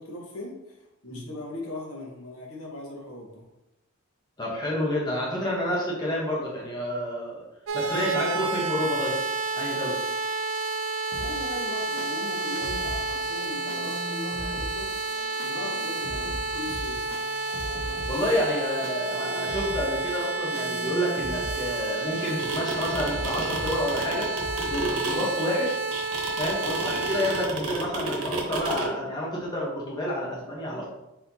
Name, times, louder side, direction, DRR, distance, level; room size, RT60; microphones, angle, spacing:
voice 1, 0.0-3.4 11.2-14.9 15.4-17.0 26.6-26.7, left 1 dB, 75° left, -2 dB, 1.2 m, -39 dB
voice 2, 4.4-7.4 7.7-9.1 9.5-10.0 18.1-24.3 24.7-25.7 26.4-30.9, equal, 20° left, -5 dB, 0.9 m, -29 dB
sound 1, 7.7-27.5, right 3 dB, 55° right, 0.3 m, -30 dB
sound 2, 11.1-24.8, equal, 10° right, 1.5 m, -40 dB
sound 3, 22.2-28.9, right 3 dB, 80° right, 1.0 m, -31 dB
4.2 x 4.1 x 2.7 m, 0.94 s
head